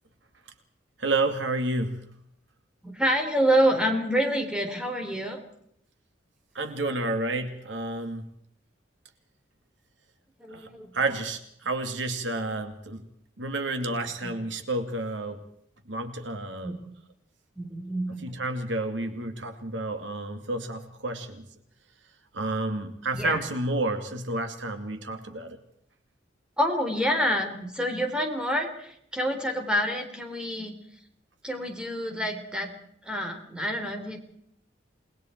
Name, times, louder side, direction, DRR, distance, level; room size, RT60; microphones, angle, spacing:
voice 1, 1.0-2.0 6.5-8.2 10.5-13.0 13.4-15.4 15.9-16.8 18.2-21.5 22.3-25.6, right 2 dB, 70° right, 6 dB, 2.4 m, -30 dB
voice 2, 2.8-5.4 10.4-10.9 12.3-12.5 14.2-14.3 16.6-16.8 17.6-18.2 23.1-23.4 26.6-30.7 31.4-32.7 33.0-34.2, equal, 5° right, 3 dB, 3.7 m, -27 dB
29.0 x 20.5 x 4.6 m, 0.70 s
head